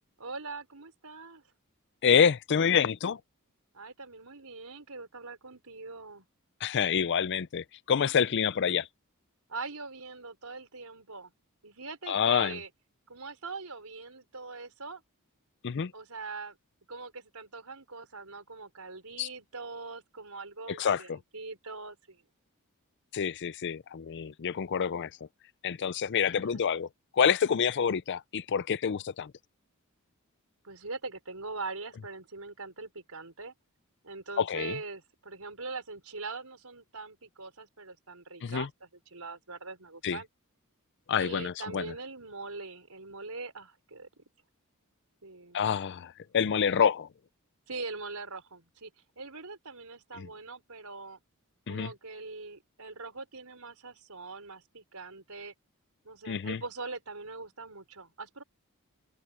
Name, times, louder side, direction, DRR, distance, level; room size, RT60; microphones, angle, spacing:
voice 1, 0.2-1.4 3.7-6.2 9.5-11.3 11.6-12.7 13.1-15.0 15.9-16.6 16.9-22.2 26.2-26.5 30.6-33.5 34.0-40.3 41.2-44.2 45.2-45.6 47.7-51.2 51.7-55.5 56.0-58.4, right 3 dB, 80° right, 5.4 m, -42 dB
voice 2, 2.0-3.2 6.6-8.9 12.1-12.6 15.6-15.9 19.2-19.3 20.8-21.0 23.1-25.1 25.6-26.9 27.1-29.3 34.4-34.7 38.4-38.7 40.0-40.2 41.1-41.9 45.5-47.1 50.2-50.3 51.7-51.9 56.3-56.6, left 7 dB, 55° left, 0.5 m, -27 dB
head